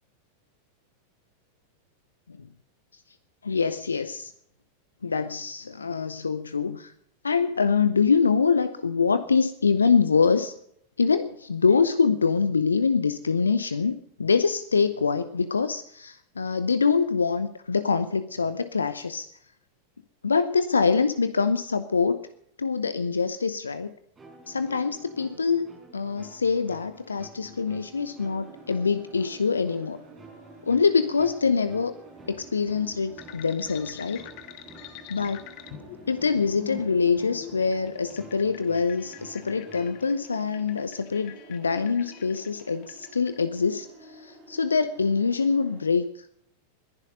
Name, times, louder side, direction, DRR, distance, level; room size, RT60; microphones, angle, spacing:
voice 1, 3.4-4.3 5.0-6.9 7.2-10.5 11.0-19.3 20.2-22.2 22.6-23.9 24.5-25.7 25.9-30.0 30.7-31.9 32.3-34.2 35.1-35.4 36.1-43.9 44.2-46.1, left 5 dB, 75° left, 12 dB, 0.8 m, -24 dB
string loop, 24.2-40.1, right 2 dB, 20° right, 5.0 m, -50 dB
sound 1, 28.2-45.8, right 2 dB, 55° right, 7.5 m, -51 dB
sound 2, 33.2-43.4, left 10 dB, 45° left, 1.4 m, -45 dB
21.0 x 11.0 x 5.3 m, 0.70 s
figure-of-eight pair, 90°, 0 cm